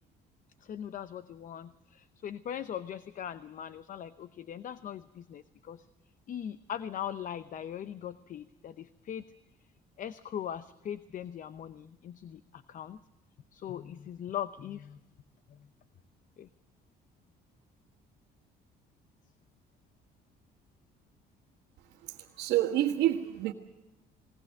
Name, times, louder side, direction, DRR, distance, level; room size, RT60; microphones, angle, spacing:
voice 1, 0.6-5.8 6.3-9.2 10.0-13.0 13.5-15.0 15.5-15.7 16.4-16.5, left 9 dB, 50° left, 13 dB, 0.8 m, -40 dB
voice 2, 22.4-23.5, right 13 dB, 85° right, -3 dB, 1.8 m, -27 dB
20.0 x 19.5 x 7.8 m, 0.96 s
cardioid pair, 110°, 17 cm